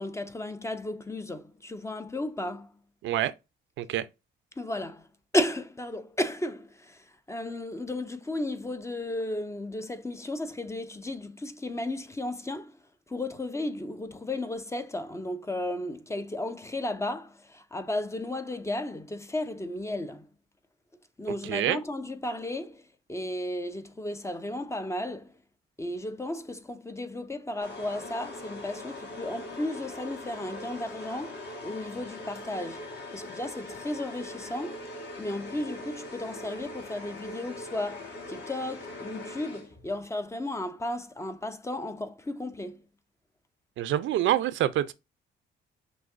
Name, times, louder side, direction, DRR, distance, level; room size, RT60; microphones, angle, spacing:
voice 1, 0.0-2.7 4.6-5.1 5.3-12.8 13.1-20.3 21.2-22.8 23.1-25.3 25.8-34.9 35.2-42.8, left 1 dB, 15° left, 0.5 m, -34 dB
voice 2, 21.4-21.8 43.8-44.9, right 12 dB, 75° right, 0.5 m, -26 dB
sound 1, 27.6-40.0, left 2 dB, 55° left, 1.8 m, -41 dB
6.2 x 2.6 x 2.5 m
cardioid pair, 90°, 20 cm